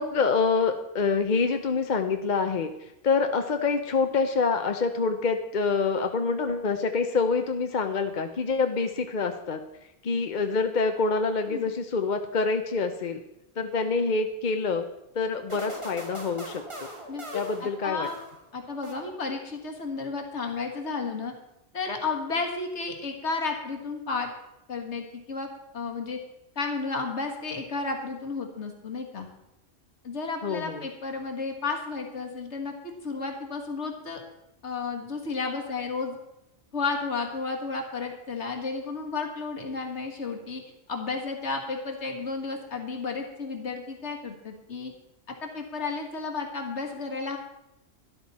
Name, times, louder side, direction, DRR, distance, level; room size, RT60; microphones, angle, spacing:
voice 1, 0.0-9.6 10.0-13.2 13.6-14.9 15.1-16.9 17.3-18.1 30.4-30.8, left 4 dB, 50° left, 6 dB, 0.8 m, -26 dB
sound 1, 15.5-18.5 18.8-19.5, right 1 dB, 25° right, 1.8 m, -41 dB
voice 2, 17.1-18.2 18.5-21.3 21.7-24.3 24.7-25.5 25.7-26.2 26.6-29.3 30.0-34.2 34.6-36.1 36.7-40.6 40.9-44.9 45.4-47.4, left 4 dB, 85° left, 3 dB, 1.9 m, -32 dB
12.5 x 11.5 x 4.2 m, 0.88 s
omnidirectional pair, 1.1 m